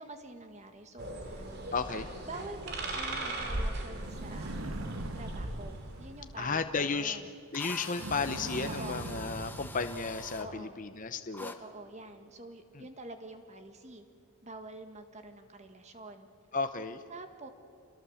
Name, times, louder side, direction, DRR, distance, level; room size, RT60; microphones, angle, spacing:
voice 1, 0.0-1.5 2.3-4.6 5.1-7.3 8.6-9.0 10.4-10.8 11.4-14.0 14.4-16.3 17.1-17.5, right 2 dB, 30° right, 7 dB, 1.7 m, -47 dB
sound 1, 1.0-6.3, right 1 dB, 50° right, 2.9 m, -38 dB
voice 2, 1.7-2.1 6.4-7.2 7.5-11.6 12.7-12.8 16.5-17.0, left 4 dB, 40° left, 8 dB, 0.8 m, -33 dB
sound 2, 4.0-7.0 7.9-10.7, right 2 dB, 70° right, 1.4 m, -42 dB
Drill, 6.9-7.0 7.5-10.5 11.3-11.6, left 2 dB, 10° left, 1.1 m, -46 dB
27.5 x 21.5 x 7.2 m, 2.6 s
head